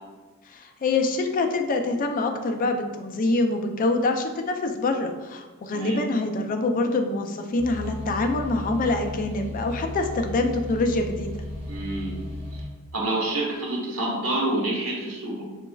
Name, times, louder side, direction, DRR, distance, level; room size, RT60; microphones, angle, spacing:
voice 1, 0.5-11.3, left 2 dB, 40° left, 5 dB, 0.3 m, -25 dB
sound 1, 7.6-12.6, left 1 dB, 25° right, 1.1 m, -35 dB
voice 2, 11.7-12.2 12.9-15.4, right 2 dB, 70° right, -3 dB, 1.2 m, -27 dB
5.6 x 3.0 x 2.3 m, 1.2 s
head